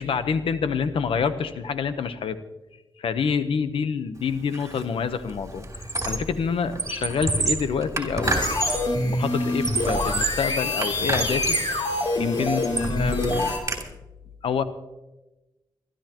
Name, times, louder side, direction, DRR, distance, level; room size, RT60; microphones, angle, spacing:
voice 1, 0.0-2.4 3.0-5.7 6.0-8.5 8.9-11.6 12.2-13.6 14.4-14.6, left 6 dB, 90° left, 11 dB, 0.9 m, -27 dB
Squeak, 4.5-4.8 5.1-6.4 6.7-8.9 9.4-10.5 10.8-11.8 12.2-13.8, right 2 dB, 35° right, 3.3 m, -28 dB
sound 1, 8.2-13.6, left 2 dB, 60° left, 3.2 m, -26 dB
23.0 x 13.0 x 3.0 m, 1.0 s
cardioid pair, 70°, 9 cm